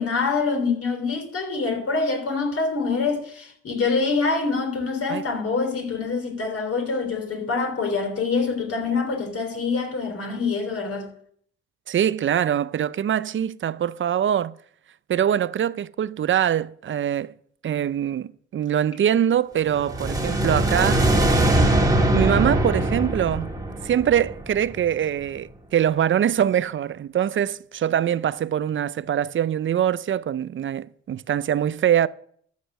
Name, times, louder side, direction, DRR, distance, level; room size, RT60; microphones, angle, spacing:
voice 1, 0.0-11.1, left 4 dB, 50° left, 3.3 m, -25 dB
voice 2, 11.9-14.6 15.1-17.3 17.6-21.1 22.1-23.5 23.8-32.1, right 10 dB, 40° right, 0.5 m, -23 dB
sound 1, 19.7-24.9, right 1 dB, 10° right, 1.7 m, -21 dB
13.5 x 6.7 x 6.3 m
cardioid pair, 90°, 30 cm